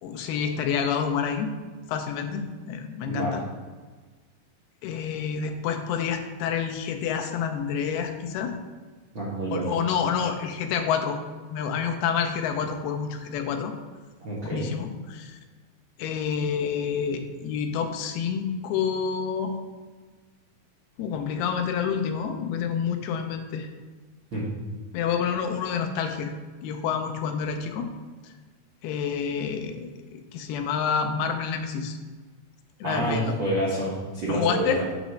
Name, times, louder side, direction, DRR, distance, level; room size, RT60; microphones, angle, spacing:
voice 1, 0.0-1.5 1.9-3.4 4.8-8.6 9.5-11.2 11.5-13.7 14.4-15.4 16.0-19.6 21.0-23.7 24.9-26.3 26.6-27.9 28.8-32.0 32.8-33.4 34.3-34.8, left 7 dB, 90° left, 5 dB, 2.7 m, -28 dB
voice 2, 9.1-9.8 14.2-14.7 24.3-24.5 32.8-34.9, right 1 dB, 70° right, -7 dB, 1.1 m, -28 dB
9.0 x 3.1 x 6.2 m, 1.4 s
omnidirectional pair, 4.4 m